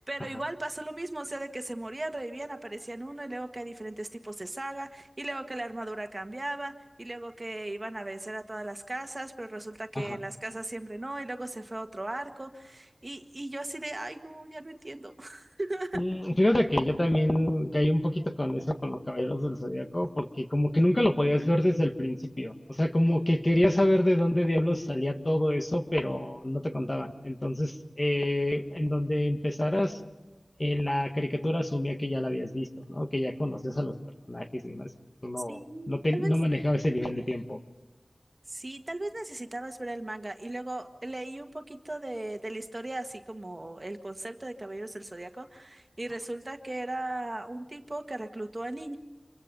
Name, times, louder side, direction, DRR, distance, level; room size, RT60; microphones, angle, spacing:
voice 1, 0.0-16.0 35.5-36.3 38.5-49.0, right 1 dB, 40° right, 6 dB, 1.6 m, -37 dB
voice 2, 15.9-30.0 30.6-33.9 34.3-34.9 35.2-35.6 35.9-37.6, left 1 dB, 35° left, 5 dB, 1.7 m, -27 dB
26.5 x 23.0 x 5.4 m, 1.1 s
wide cardioid pair, 55°, 0 cm